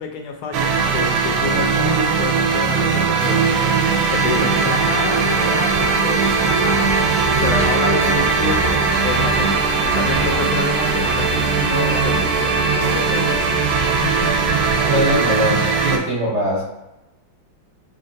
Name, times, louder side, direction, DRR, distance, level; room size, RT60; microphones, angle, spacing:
voice 1, 0.0-3.8 4.1-7.0 7.4-13.7 13.9-14.3, left 5 dB, 85° left, 3 dB, 1.5 m, -28 dB
sound 1, 0.5-16.0, right 5 dB, 75° right, 1.3 m, -19 dB
sound 2, 5.6-15.2, right 2 dB, 20° right, 0.6 m, -32 dB
voice 2, 14.8-16.6, equal, 60° right, -7 dB, 0.7 m, -21 dB
3.7 x 2.3 x 3.8 m, 0.96 s
omnidirectional pair, 2.2 m